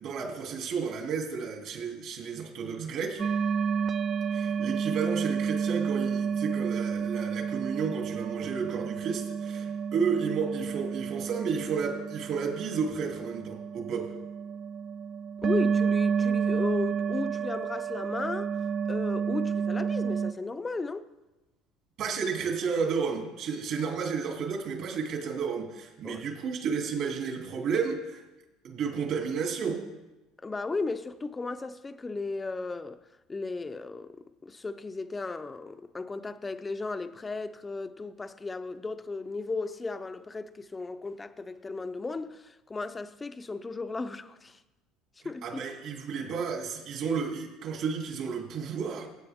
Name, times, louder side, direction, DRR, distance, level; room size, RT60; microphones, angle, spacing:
voice 1, 0.0-3.2 4.3-14.1 22.0-28.2 28.6-29.8 45.4-49.1, right 6 dB, 55° right, 2.7 m, -32 dB
sound 1, 3.2-20.3, right 6 dB, 35° right, 0.4 m, -30 dB
voice 2, 15.4-18.6 18.9-21.0 26.0-26.2 30.4-33.0 33.3-44.6 45.2-45.6, left 3 dB, 15° left, 0.6 m, -35 dB
15.5 x 8.3 x 3.6 m
supercardioid pair, 115°, 0 cm